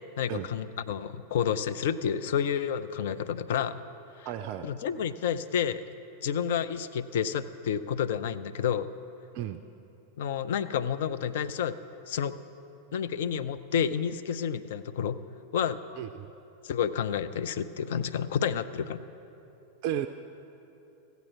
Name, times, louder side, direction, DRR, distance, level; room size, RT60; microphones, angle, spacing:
voice 1, 0.2-3.7 4.2-4.3 4.6-5.8 6.2-8.9 10.2-11.8 12.1-12.3 12.9-15.2 15.5-15.8 16.6-19.0, left 8 dB, 55° left, 11 dB, 0.4 m, -30 dB
voice 2, 4.3-4.7 9.3-9.6 16.0-16.3 19.8-20.1, right 11 dB, 45° right, 8 dB, 0.3 m, -33 dB
15.0 x 8.1 x 4.7 m, 2.9 s
figure-of-eight pair, 90°, 0 cm